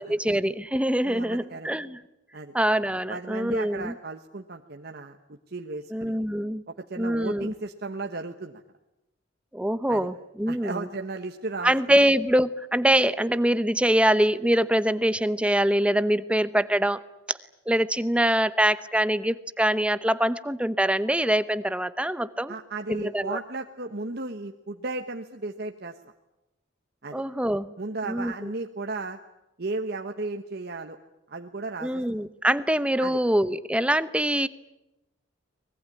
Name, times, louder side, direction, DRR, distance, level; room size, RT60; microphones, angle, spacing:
voice 1, 0.0-2.0 2.5-3.9 5.9-6.6 7.0-7.5 9.5-10.9 11.6-17.0 17.3-17.4 17.7-22.5 22.9-23.4 27.1-27.7 28.1-28.5 31.8-34.5, right 1 dB, 5° right, 14 dB, 0.8 m, -24 dB
voice 2, 1.0-1.7 2.3-2.5 3.1-6.2 6.7-8.6 9.9-10.1 10.5-11.7 22.5-25.9 27.0-27.2 27.8-29.2 29.6-31.0 31.3-32.0 33.0-33.2, right 3 dB, 55° right, 5 dB, 1.2 m, -35 dB
24.0 x 21.0 x 9.9 m, 0.91 s
head